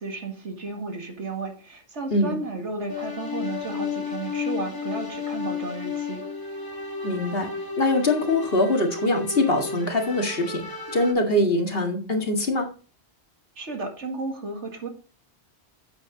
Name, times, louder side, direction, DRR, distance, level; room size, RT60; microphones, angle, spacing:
voice 1, 0.0-6.2 13.6-14.9, right 3 dB, 80° right, 2.3 m, -33 dB
sound 1, 2.9-11.1, left 5 dB, 20° left, 1.7 m, -33 dB
voice 2, 7.0-12.7, left 2 dB, 55° left, 2.1 m, -23 dB
9.2 x 7.7 x 3.8 m
omnidirectional pair, 1.2 m